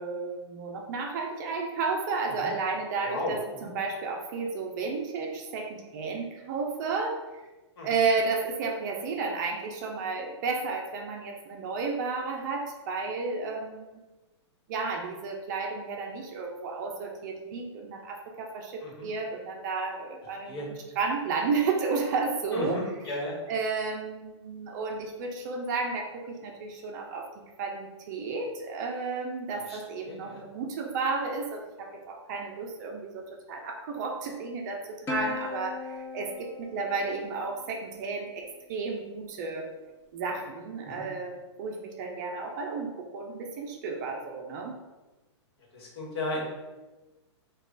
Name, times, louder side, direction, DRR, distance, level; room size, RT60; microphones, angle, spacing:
voice 1, 0.0-7.2 7.8-14.0 14.7-22.8 23.1-23.2 23.5-27.3 27.6-39.7 40.1-44.8, right 4 dB, 40° right, 1 dB, 0.5 m, -32 dB
voice 2, 22.5-23.3 29.7-29.8 30.0-30.4 40.8-41.0 45.7-46.5, left 1 dB, 55° left, -3 dB, 1.3 m, -34 dB
Plucked string instrument, 35.1-37.8, left 4 dB, 15° left, 0.4 m, -37 dB
3.1 x 2.3 x 3.7 m, 1.1 s
hypercardioid pair, 155°, 15 cm